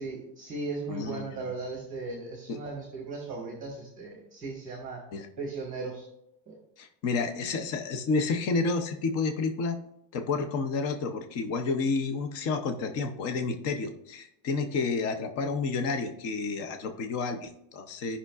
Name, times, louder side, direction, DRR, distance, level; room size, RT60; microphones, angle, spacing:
voice 1, 0.0-5.0 5.4-6.1 6.5-6.6, right 3 dB, 15° right, -1 dB, 1.3 m, -37 dB
voice 2, 0.9-1.5 2.5-2.6 5.1-5.3 6.8-9.8 10.1-18.2, left 4 dB, 30° left, 7 dB, 0.6 m, -30 dB
14.5 x 5.6 x 2.3 m, 0.78 s
cardioid pair, 175°, 50 cm